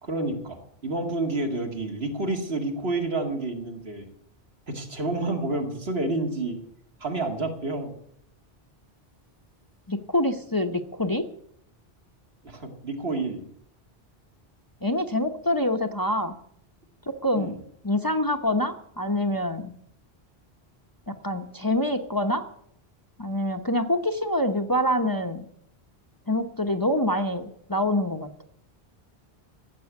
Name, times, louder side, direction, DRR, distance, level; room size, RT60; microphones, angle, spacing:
voice 1, 0.0-4.1 4.7-6.6 7.0-8.0 12.4-13.4 17.3-17.6, right 2 dB, 75° right, 2 dB, 2.5 m, -29 dB
voice 2, 9.9-11.3 14.8-16.4 17.1-17.5 17.8-19.7 21.1-22.4 23.2-25.5 26.3-28.3, left 1 dB, 20° left, 5 dB, 0.9 m, -26 dB
15.0 x 7.7 x 8.2 m, 0.70 s
omnidirectional pair, 1.1 m